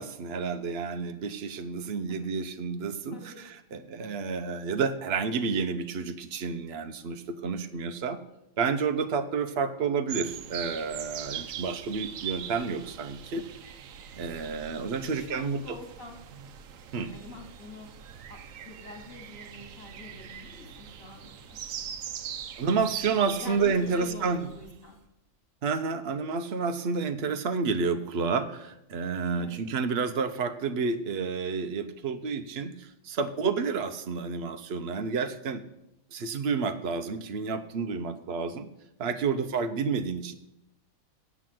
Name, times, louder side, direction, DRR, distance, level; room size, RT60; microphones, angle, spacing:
voice 1, 0.0-8.2 8.6-13.4 14.2-15.8 16.9-17.1 22.6-24.4 25.6-35.6 36.1-38.7 39.0-40.3, right 5 dB, 55° right, 8 dB, 1.0 m, -30 dB
voice 2, 1.8-2.2 3.1-3.4 3.7-3.8 15.1-16.1 17.1-17.9 18.3-21.6 23.4-25.0 29.4-29.7 39.3-39.5, left 3 dB, 80° left, 2 dB, 2.7 m, -45 dB
sound 1, 10.1-24.8, right 9 dB, 80° right, 1.1 m, -41 dB
8.0 x 7.3 x 7.6 m, 0.85 s
omnidirectional pair, 1.4 m